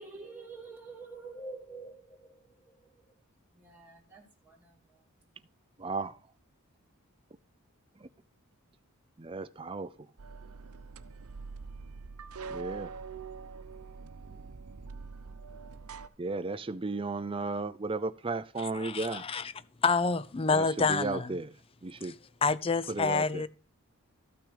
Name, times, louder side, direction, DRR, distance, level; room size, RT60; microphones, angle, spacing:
voice 1, 0.0-3.1 3.5-5.0, right 3 dB, 10° right, 2.6 m, -48 dB
voice 2, 5.8-6.2 8.0-8.1 9.2-9.9 12.5-12.9 16.2-19.2 20.5-21.5 21.8-22.1 22.9-23.4, right 3 dB, 25° right, 0.5 m, -34 dB
sound 1, 10.2-16.1, right 5 dB, 80° right, 0.8 m, -44 dB
voice 3, 18.6-19.5 19.8-21.4 22.0-22.1 22.4-23.5, left 4 dB, 25° left, 0.5 m, -28 dB
13.0 x 6.0 x 5.1 m
head